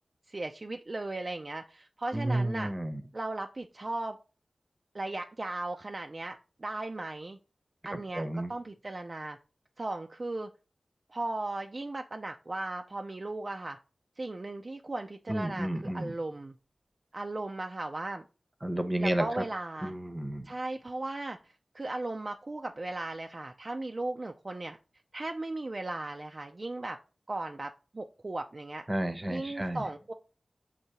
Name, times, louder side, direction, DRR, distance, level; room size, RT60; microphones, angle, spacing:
voice 1, 0.3-2.7 3.1-4.2 4.9-7.4 7.8-9.4 9.8-10.5 11.1-13.8 14.2-16.5 17.1-18.2 19.0-19.9 20.4-21.4 21.7-24.8 25.1-27.0 27.3-28.8 29.3-30.1, right 2 dB, 45° right, 4 dB, 0.3 m, -37 dB
voice 2, 2.1-3.0 7.9-8.5 15.3-16.1 18.6-19.4 19.8-20.5 28.9-29.8, right 1 dB, 20° right, 8 dB, 0.7 m, -31 dB
6.6 x 2.7 x 2.8 m, 0.33 s
wide cardioid pair, 55°, 0 cm